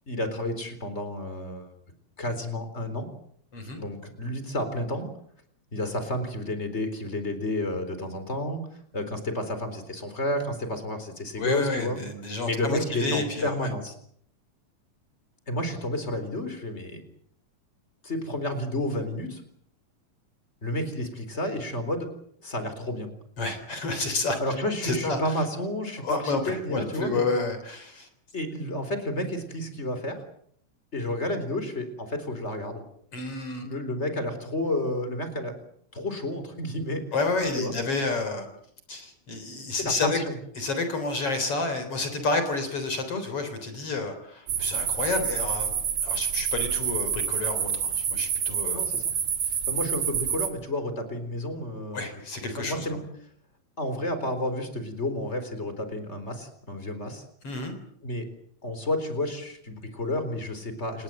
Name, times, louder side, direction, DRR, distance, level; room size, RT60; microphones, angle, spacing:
voice 1, 0.1-1.7 2.2-3.1 3.8-5.1 5.7-8.6 8.9-12.0 12.4-13.9 15.5-17.0 18.0-19.4 20.6-22.1 22.4-23.1 24.4-27.2 28.3-30.2 30.9-32.8 33.6-35.5 35.9-37.0 37.6-37.7 39.7-40.3 48.7-49.0 49.5-52.1 52.5-53.0 53.8-57.2 58.0-58.3 58.6-61.0, left 1 dB, 20° left, 9 dB, 4.2 m, -31 dB
voice 2, 11.4-13.7 23.4-24.4 24.8-25.2 26.0-28.1 33.1-33.7 37.1-38.5 38.9-40.2 40.6-45.7 46.0-48.8 51.9-52.9 57.4-57.7, left 3 dB, 50° left, 8 dB, 4.6 m, -30 dB
sound 1, 44.5-50.5, right 7 dB, 85° right, 4.0 m, -28 dB
29.0 x 20.5 x 7.6 m, 0.66 s
omnidirectional pair, 3.4 m